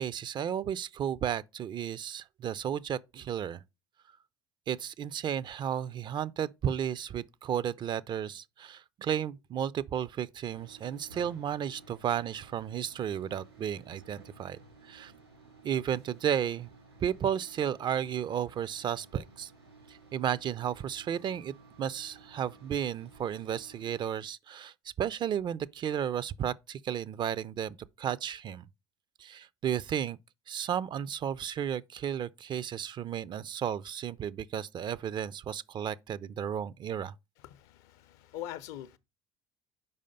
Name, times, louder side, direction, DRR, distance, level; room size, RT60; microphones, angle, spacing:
voice 1, 0.0-3.6 4.7-14.6 14.8-15.1 15.6-16.7 17.0-19.5 19.9-28.6 29.2-30.2 30.5-37.1, right 9 dB, 35° right, 0.4 m, -33 dB
sound 1, 10.5-24.0, right 3 dB, 80° right, 2.9 m, -56 dB
voice 2, 37.4-39.0, left 12 dB, 60° left, 0.6 m, -43 dB
5.5 x 5.0 x 5.1 m
figure-of-eight pair, 60°, 13 cm